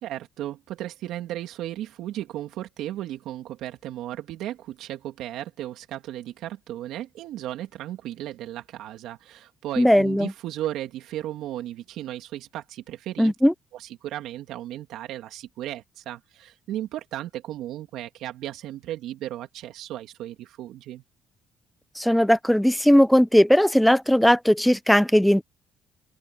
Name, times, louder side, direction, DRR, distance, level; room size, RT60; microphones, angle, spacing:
voice 1, 0.0-13.3 13.7-21.0, right 13 dB, 75° right, 2.8 m, -35 dB
voice 2, 9.8-10.3 13.2-13.5 22.0-25.4, equal, 5° left, 0.6 m, -18 dB
supercardioid pair, 70°, 0 cm